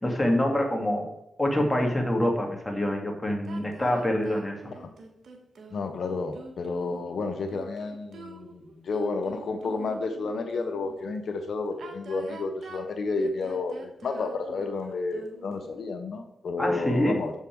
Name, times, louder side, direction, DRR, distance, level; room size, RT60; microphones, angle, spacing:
voice 1, 0.0-1.1 1.4-4.7 16.6-17.2, left 1 dB, 15° left, 1 dB, 2.2 m, -26 dB
sound 1, 3.4-11.0 11.7-15.7, right 3 dB, 75° right, 1.2 m, -45 dB
voice 2, 5.7-17.3, left 3 dB, 75° left, 7 dB, 0.7 m, -31 dB
6.8 x 5.6 x 4.5 m, 0.87 s
cardioid pair, 50°, 0 cm